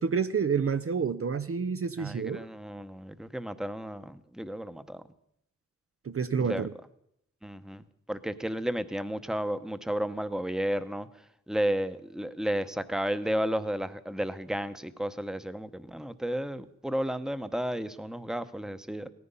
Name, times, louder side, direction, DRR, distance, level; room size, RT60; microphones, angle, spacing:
voice 1, 0.0-2.5 6.0-6.7, right 6 dB, 45° right, 11 dB, 0.6 m, -29 dB
voice 2, 2.0-5.0 6.4-6.7 7.4-7.8 8.1-11.1 11.5-19.1, equal, ahead, 11 dB, 0.9 m, -32 dB
17.5 x 14.0 x 5.5 m, 0.77 s
wide cardioid pair, 75°, 30 cm